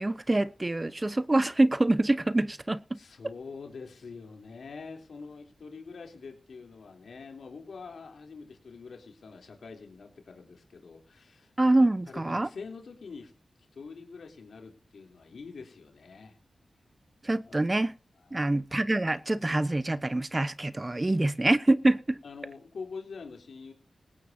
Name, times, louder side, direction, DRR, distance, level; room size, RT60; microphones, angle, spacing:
voice 1, 0.0-3.0 11.6-12.5 17.2-17.9 18.3-22.2, right 2 dB, 30° right, 0.9 m, -25 dB
voice 2, 2.9-11.5 12.1-13.3 13.7-16.4 17.4-17.7 18.2-18.5 21.1-21.5 22.2-23.7, left 4 dB, 80° left, 3.5 m, -45 dB
18.5 x 16.0 x 2.8 m
cardioid pair, 45°, 0 cm